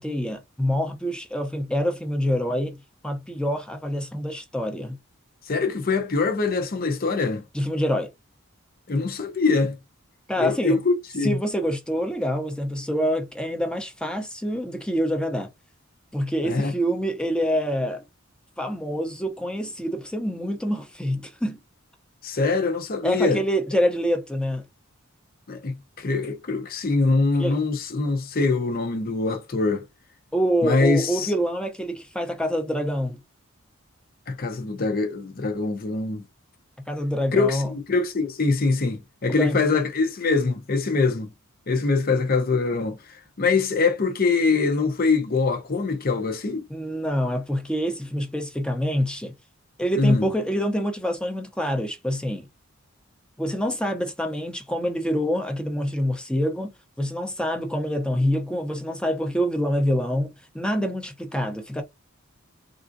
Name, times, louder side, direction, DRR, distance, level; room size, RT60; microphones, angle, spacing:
voice 1, 0.0-2.8 3.0-5.0 7.5-8.1 10.3-10.8 11.2-15.5 16.1-18.0 18.6-21.6 23.0-24.7 27.4-27.6 30.3-33.2 36.8-37.7 39.3-39.6 46.7-49.3 49.8-52.5 53.4-61.8, equal, 5° left, 0.6 m, -26 dB
voice 2, 5.5-7.4 8.9-9.8 10.4-11.4 16.4-16.7 22.2-23.4 25.5-29.8 30.6-31.3 34.3-36.2 37.3-41.3 41.7-43.0 43.4-46.6 50.0-50.3, left 3 dB, 45° left, 0.6 m, -23 dB
3.5 x 2.6 x 2.5 m
head